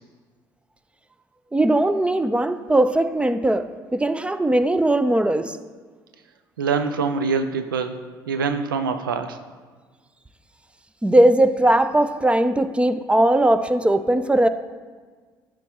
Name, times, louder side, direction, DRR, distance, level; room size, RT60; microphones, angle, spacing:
voice 1, 1.5-5.6 11.0-14.5, right 1 dB, 10° right, 11 dB, 0.5 m, -19 dB
voice 2, 6.6-7.9 8.3-9.4, right 5 dB, 90° right, 9 dB, 0.4 m, -24 dB
11.5 x 4.6 x 3.7 m, 1.5 s
hypercardioid pair, 55°, 11 cm